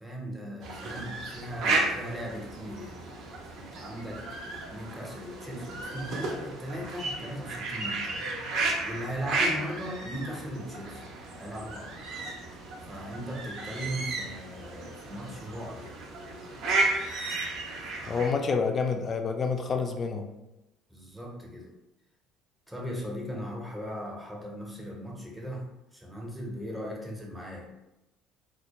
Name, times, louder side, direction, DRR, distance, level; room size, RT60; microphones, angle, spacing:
voice 1, 0.0-3.1 3.5-8.1 8.8-11.0 11.4-11.9 12.8-16.0 17.9-18.3 20.9-21.7 22.7-27.7, equal, 5° right, -2 dB, 0.7 m, -38 dB
sound 1, 0.6-18.3, right 3 dB, 60° right, 0.5 m, -33 dB
voice 2, 18.1-20.3, left 5 dB, 40° left, 5 dB, 0.3 m, -28 dB
2.1 x 2.0 x 2.9 m, 0.96 s
hypercardioid pair, 60°, 0 cm